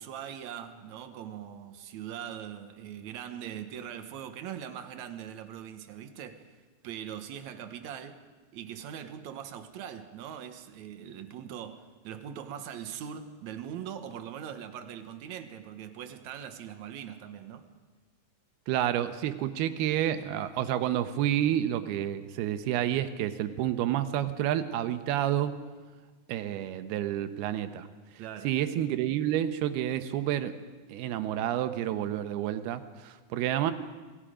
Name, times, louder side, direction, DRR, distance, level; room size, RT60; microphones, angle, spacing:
voice 1, 0.0-6.5 6.8-8.2 8.5-17.7 28.2-28.5, right 9 dB, 65° right, 1.9 m, -41 dB
voice 2, 18.7-25.6 26.3-27.9 28.4-30.5 30.9-33.7, right 11 dB, 80° right, 2.9 m, -29 dB
27.0 x 19.5 x 5.1 m
omnidirectional pair, 4.5 m